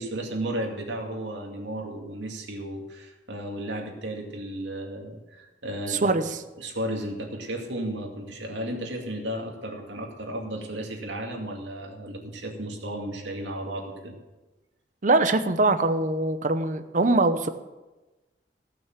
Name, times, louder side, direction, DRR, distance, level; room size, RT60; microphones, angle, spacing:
voice 1, 0.0-6.1 6.6-14.2, right 1 dB, 85° right, 1 dB, 2.4 m, -34 dB
voice 2, 5.9-6.3 15.0-17.5, right 2 dB, 45° right, 10 dB, 0.8 m, -22 dB
15.5 x 6.3 x 7.5 m, 1.1 s
head